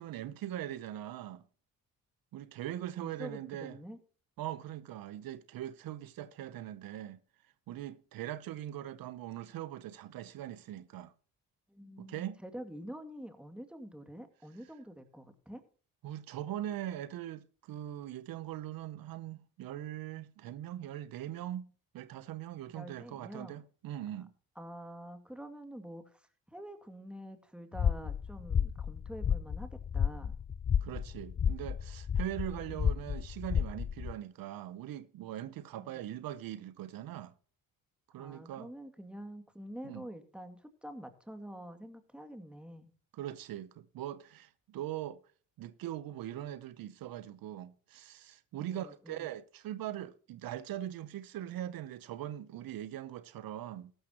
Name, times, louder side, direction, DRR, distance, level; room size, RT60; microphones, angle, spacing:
voice 1, 0.0-1.4 2.3-3.8 4.4-7.2 7.7-11.1 12.0-12.4 16.0-24.3 30.8-37.3 38.1-38.7 39.8-40.0 43.1-45.2 45.6-53.9, right 12 dB, 75° right, 0.8 m, -41 dB
voice 2, 3.0-4.0 11.7-15.6 22.7-23.6 24.6-30.4 35.8-35.9 38.2-42.9 48.6-49.3, equal, 5° right, 2.3 m, -47 dB
sound 1, 27.7-34.1, left 7 dB, 25° left, 0.5 m, -32 dB
14.5 x 12.0 x 2.9 m
supercardioid pair, 60°, 36 cm